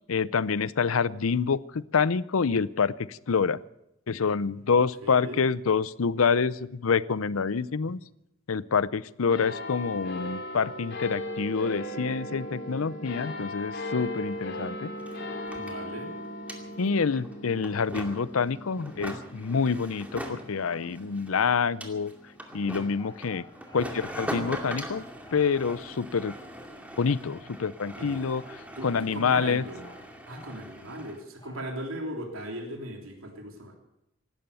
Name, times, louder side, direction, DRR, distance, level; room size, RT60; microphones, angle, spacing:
voice 1, 0.1-3.6 4.1-8.0 8.5-14.9 16.8-22.1 22.5-23.4 23.7-25.0 25.3-26.3 27.0-29.6, left 5 dB, 85° left, 18 dB, 0.6 m, -27 dB
voice 2, 5.0-5.4 15.5-16.1 28.0-28.2 28.8-29.8 30.3-33.8, right 1 dB, 80° right, 2 dB, 3.3 m, -38 dB
sound 1, 9.3-22.2 22.8-22.9, left 1 dB, 55° left, 3.3 m, -38 dB
sound 2, 14.3-14.4 14.6-31.2, equal, 5° right, 2.4 m, -41 dB
sound 3, 22.9-25.6 27.7-31.8, left 2 dB, 20° left, 3.0 m, -54 dB
16.5 x 12.5 x 6.9 m, 0.83 s
head